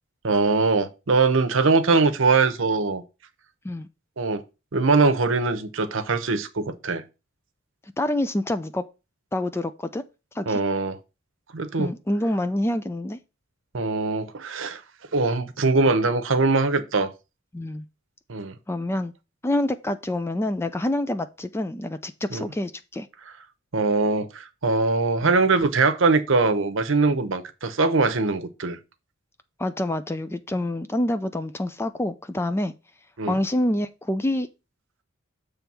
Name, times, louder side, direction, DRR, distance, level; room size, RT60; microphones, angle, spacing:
voice 1, 0.2-3.0 4.2-4.4 4.7-7.0 10.5-11.0 11.5-11.9 13.7-14.8 15.1-17.1 18.3-18.5 22.3-22.4 23.7-28.8 33.2-33.4, right 3 dB, 65° right, 0.8 m, -22 dB
voice 2, 8.0-8.8 9.3-10.0 10.4-10.6 11.8-13.2 17.5-17.8 18.7-19.1 19.4-23.1 25.2-25.4 29.6-32.7 33.3-34.5, left 1 dB, 10° left, 0.4 m, -27 dB
7.1 x 3.4 x 6.0 m
head